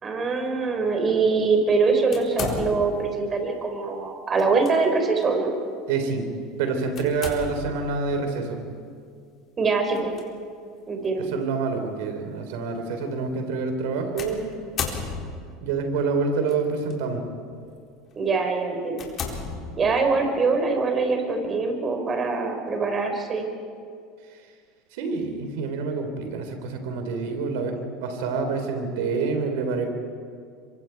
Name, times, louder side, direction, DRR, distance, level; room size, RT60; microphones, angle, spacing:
voice 1, 0.0-5.5 9.6-10.1 10.9-11.3 18.1-19.1 19.8-23.5, right 4 dB, 30° right, 4 dB, 5.0 m, -23 dB
sound 1, 2.1-3.1 4.4-4.7 5.2-5.3 7.0-7.8 9.9-10.2 11.0-11.1 14.2-15.6 16.5-16.9 17.5-17.7 18.2-18.3 18.9-20.2, left 5 dB, 40° left, 4.1 m, -33 dB
voice 2, 5.9-6.3 6.6-8.6 11.2-14.5 15.6-17.2 24.9-29.9, right 4 dB, 70° right, 6 dB, 3.6 m, -27 dB
26.5 x 24.0 x 4.6 m, 2.2 s
hypercardioid pair, 85°, 0 cm